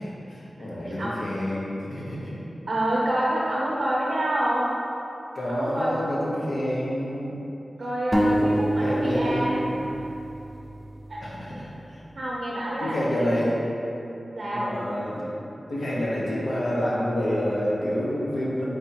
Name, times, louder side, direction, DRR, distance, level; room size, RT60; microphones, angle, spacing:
voice 1, 0.0-2.3 5.3-7.3 8.3-8.5 8.8-9.8 11.2-12.0 12.8-13.6 14.5-15.2 15.7-18.6, equal, 80° left, -7 dB, 0.9 m, -28 dB
voice 2, 2.7-4.7 5.5-6.0 7.8-9.6 11.1-11.3 12.1-13.3 14.3-14.7, right 1 dB, 80° right, -7 dB, 0.5 m, -27 dB
sound 1, 8.1-11.7, right 1 dB, 5° left, 0.3 m, -27 dB
4.2 x 3.5 x 2.8 m, 2.9 s
wide cardioid pair, 60°, 0 cm